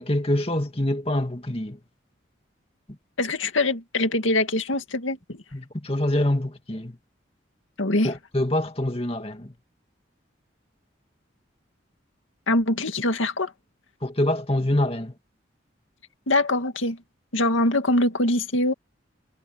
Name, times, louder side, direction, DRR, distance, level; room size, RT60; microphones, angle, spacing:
voice 1, 0.0-1.8 5.5-7.0 8.0-9.5 14.0-15.1, left 1 dB, 30° left, 2.3 m, -25 dB
voice 2, 3.2-5.4 7.8-8.1 12.5-13.5 16.3-17.0 17.3-18.7, left 2 dB, 90° left, 2.3 m, -23 dB
head